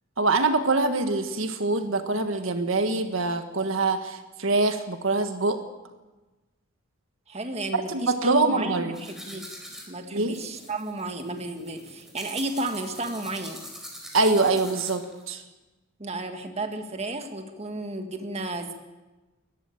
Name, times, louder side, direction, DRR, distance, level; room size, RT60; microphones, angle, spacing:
voice 1, 0.2-5.6 7.9-9.0 10.1-10.4 14.1-15.4, right 3 dB, 75° right, 7 dB, 1.6 m, -24 dB
voice 2, 7.3-9.5 9.9-13.6 16.0-18.7, right 2 dB, 30° right, 5 dB, 1.8 m, -33 dB
sound 1, 8.9-15.2, equal, ahead, 4.5 m, -43 dB
21.0 x 14.5 x 9.1 m, 1.1 s
head